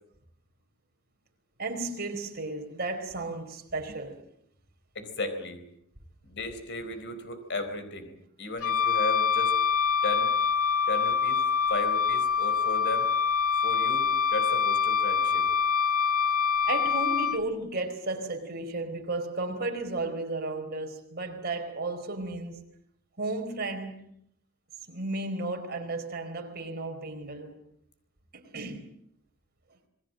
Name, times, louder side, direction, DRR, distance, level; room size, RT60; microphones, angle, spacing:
voice 1, 1.6-4.2 16.7-22.6 23.2-24.1 24.9-27.6 28.3-28.9, right 2 dB, 45° right, 4.2 m, -34 dB
voice 2, 4.9-5.6 6.2-9.5 10.0-10.3 10.9-11.4 11.7-13.1 13.6-15.5, left 2 dB, 55° left, 4.3 m, -35 dB
Wind instrument woodwind instrument, 8.6-17.4, left 6 dB, 80° left, 1.0 m, -25 dB
27.5 x 20.5 x 7.6 m
head